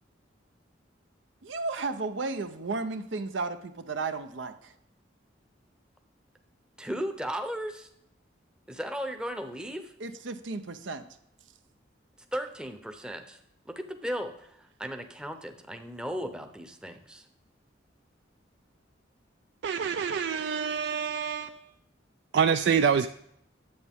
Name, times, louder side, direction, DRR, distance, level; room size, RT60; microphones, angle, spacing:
voice 1, 1.4-4.7 10.0-11.0, right 3 dB, 80° right, 9 dB, 0.8 m, -34 dB
voice 2, 6.8-7.9 8.7-9.9 12.3-13.4 13.7-17.3, equal, 5° right, 6 dB, 0.7 m, -36 dB
voice 3, 19.6-21.6 22.3-23.1, right 7 dB, 60° right, 10 dB, 0.3 m, -26 dB
10.5 x 8.1 x 3.6 m, 0.75 s
head